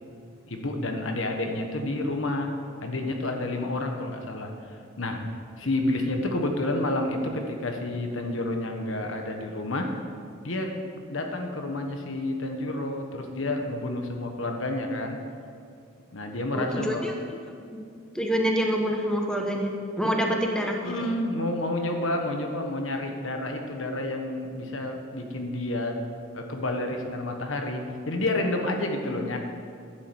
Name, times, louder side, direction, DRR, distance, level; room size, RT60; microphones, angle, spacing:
voice 1, 0.5-2.5 2.8-5.2 5.6-9.9 10.4-15.2 16.1-17.0 20.2-20.4 20.8-26.0 26.3-29.4, left 1 dB, 70° left, 3 dB, 1.3 m, -30 dB
voice 2, 16.5-17.1 17.7-17.8 18.1-19.7 20.0-21.0, equal, 5° left, 1 dB, 1.0 m, -26 dB
11.0 x 7.5 x 8.0 m, 2.3 s
head